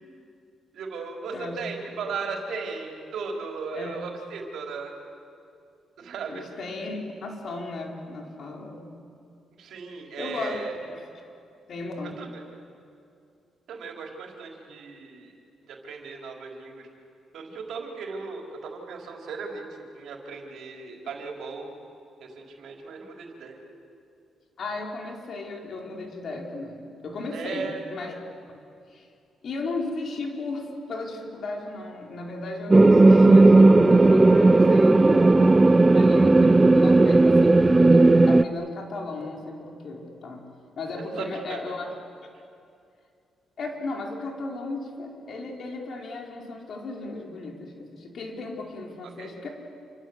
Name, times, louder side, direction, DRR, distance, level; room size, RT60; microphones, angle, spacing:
voice 1, 0.7-4.9 6.0-6.5 9.6-10.7 12.0-12.4 13.7-15.3 15.6-16.9 17.3-21.7 22.2-23.6 27.3-27.8 40.9-41.8 49.2-49.3, right 5 dB, 75° right, 1 dB, 4.5 m, -37 dB
voice 2, 6.3-8.9 10.2-10.6 10.9-11.0 11.7-12.2 24.6-28.3 28.9-29.1 29.4-35.5 35.8-40.4 40.8-41.9 43.6-49.5, left 2 dB, 55° left, 0 dB, 4.8 m, -35 dB
sound 1, 32.7-38.4, right 2 dB, 20° right, 0.7 m, -15 dB
28.5 x 25.5 x 8.2 m, 2.5 s
cardioid pair, 90°, 0 cm